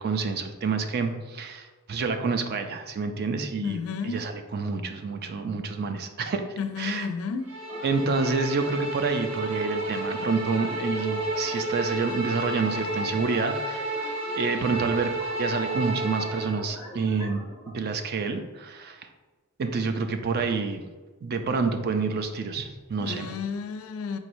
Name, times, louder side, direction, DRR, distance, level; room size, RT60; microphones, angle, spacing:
voice 1, 0.0-3.8 4.0-6.4 6.8-7.1 7.8-13.9 14.3-15.1 15.4-17.4 17.7-19.1 19.6-20.8 21.2-23.3, right 4 dB, 45° right, 7 dB, 0.4 m, -28 dB
voice 2, 3.6-4.2 6.6-7.5 23.0-24.2, left 5 dB, 70° left, 8 dB, 0.4 m, -31 dB
Bowed string instrument, 7.5-16.6, right 1 dB, 70° right, 0.8 m, -31 dB
sound 1, 7.7-17.7, equal, 15° right, 1.3 m, -44 dB
4.7 x 3.0 x 2.6 m, 1.3 s
head